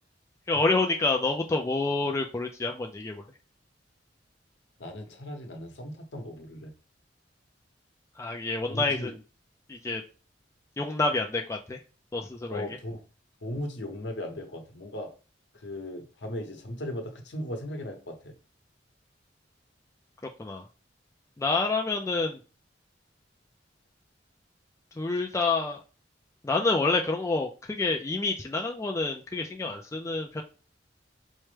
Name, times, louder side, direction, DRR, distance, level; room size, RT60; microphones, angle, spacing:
voice 1, 0.5-3.2 8.2-9.2 9.7-10.0 10.8-11.8 12.1-12.7 20.4-20.6 21.4-22.4 25.0-25.8 26.4-30.4, left 3 dB, 15° left, 1 dB, 0.3 m, -28 dB
voice 2, 4.8-6.7 8.7-9.1 12.5-13.0 13.4-15.1 15.5-18.3, left 1 dB, 70° left, 3 dB, 0.9 m, -37 dB
4.4 x 2.1 x 3.2 m, 0.35 s
head